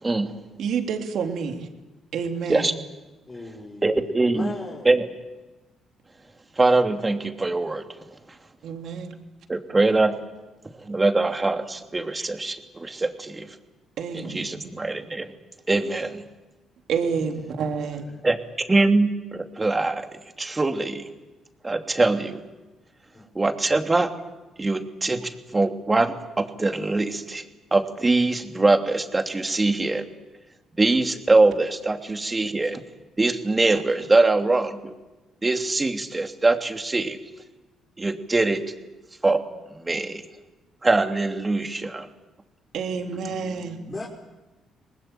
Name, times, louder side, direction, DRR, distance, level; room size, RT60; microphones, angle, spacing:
voice 1, 0.0-0.3 2.5-2.7 3.8-4.5 4.8-5.1 6.6-7.8 9.5-10.2 10.8-13.5 14.1-15.3 15.7-16.2 18.2-18.4 18.7-20.1 20.4-21.0 21.6-22.4 23.3-24.1 24.6-25.2 25.5-27.4 27.7-30.0 30.8-32.8 33.2-34.9 35.4-37.2 38.0-38.6 39.2-39.4 39.7-40.2 40.8-42.1, right 2 dB, 25° right, 2.9 m, -22 dB
voice 2, 0.6-1.6 2.1-2.7 8.6-9.2 14.0-14.7 16.9-18.0 42.7-43.8, right 6 dB, 70° right, 3.3 m, -28 dB
voice 3, 3.3-5.1 17.1-17.5 17.8-18.2 23.1-23.3 43.0-44.1, left 2 dB, 30° left, 5.2 m, -40 dB
25.0 x 20.0 x 9.0 m
supercardioid pair, 60°, 0 cm